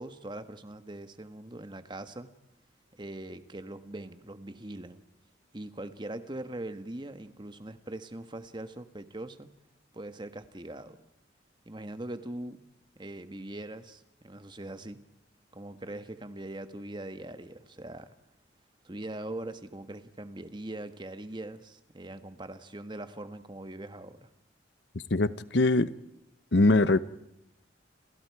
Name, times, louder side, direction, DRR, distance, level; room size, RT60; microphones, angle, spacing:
voice 1, 0.0-2.3 2.9-5.0 5.5-9.5 9.9-11.0 11.6-12.6 13.0-15.0 15.5-18.1 18.8-24.3, right 1 dB, 25° right, 1.4 m, -41 dB
voice 2, 25.1-25.9 26.5-27.0, left 2 dB, 65° left, 1.0 m, -22 dB
29.5 x 27.0 x 4.8 m
head